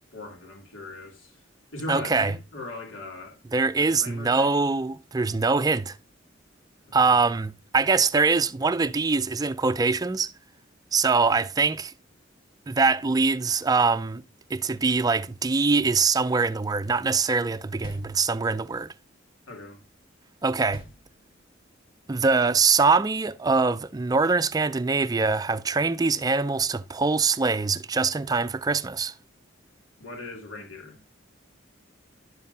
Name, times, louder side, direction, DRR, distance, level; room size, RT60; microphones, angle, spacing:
voice 1, 0.1-1.3 1.7-3.4 3.7-4.7 7.0-7.2 19.5-19.8 30.0-31.0, left 2 dB, 90° left, 2.9 m, -39 dB
voice 2, 1.9-2.3 3.5-6.0 6.9-10.3 10.9-11.9 12.7-14.2 14.5-18.9 20.4-20.8 22.1-29.1, right 4 dB, 20° right, 0.4 m, -23 dB
sound 1, 17.8-18.7 20.7-21.6, equal, 45° left, 1.6 m, -46 dB
11.0 x 7.3 x 2.7 m
head